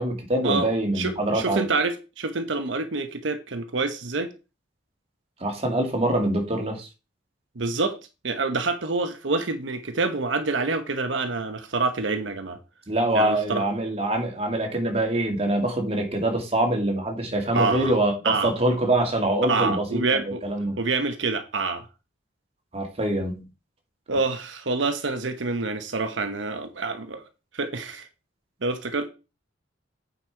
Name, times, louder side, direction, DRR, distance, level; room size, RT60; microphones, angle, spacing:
voice 1, 0.0-1.6 5.4-6.9 12.9-20.8 22.7-23.5, right 1 dB, 35° right, 2.1 m, -24 dB
voice 2, 0.9-4.3 7.6-8.0 8.2-12.6 13.1-13.6 17.5-17.9 18.2-18.5 19.4-20.4 20.8-21.9 24.1-27.2 27.5-28.1 28.6-29.1, right 3 dB, 85° right, 1.0 m, -27 dB
8.7 x 5.3 x 4.5 m
head